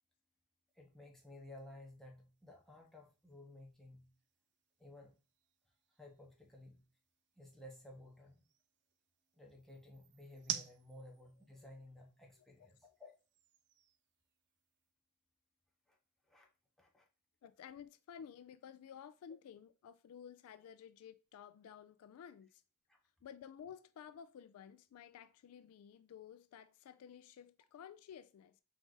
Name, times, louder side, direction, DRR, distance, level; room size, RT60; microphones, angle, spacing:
voice 1, 0.7-4.1 4.8-5.1 6.0-6.8 7.4-8.4 9.3-13.1 15.9-16.0 16.3-16.5 16.8-17.1 22.9-23.0, left 1 dB, ahead, 0.9 m, -56 dB
sound 1, 0.7-14.9, right 10 dB, 50° right, 0.3 m, -53 dB
voice 2, 17.4-22.6 23.2-28.6, left 8 dB, 75° left, 0.3 m, -54 dB
4.7 x 2.5 x 3.8 m
head